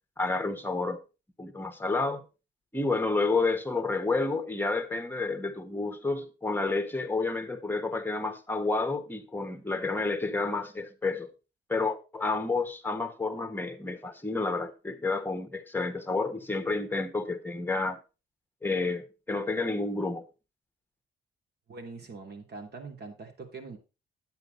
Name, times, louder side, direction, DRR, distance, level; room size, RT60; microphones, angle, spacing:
voice 1, 0.2-1.0 1.4-2.2 2.7-11.3 11.7-18.0 18.6-20.2, left 3 dB, 10° left, 1.5 m, -30 dB
voice 2, 21.7-23.8, right 4 dB, 55° right, 2.9 m, -43 dB
9.3 x 8.9 x 4.0 m
cardioid pair, 90°, 20 cm